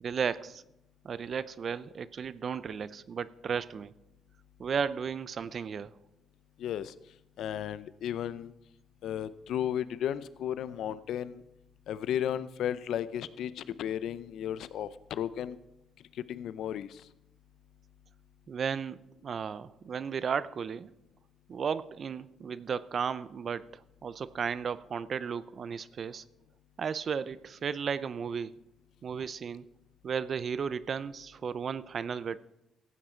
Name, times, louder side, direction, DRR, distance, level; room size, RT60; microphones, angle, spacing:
voice 1, 0.0-0.6 1.0-3.9 4.6-5.9 18.5-20.9 21.5-26.2 26.8-28.6 29.0-29.7 30.0-32.4, right 6 dB, 50° right, 17 dB, 0.5 m, -34 dB
voice 2, 6.6-6.9 7.4-8.5 9.0-11.4 11.9-15.6 16.3-17.0, left 10 dB, 75° left, 15 dB, 0.6 m, -34 dB
15.0 x 8.7 x 4.4 m, 0.87 s
cardioid pair, 90°, 0 cm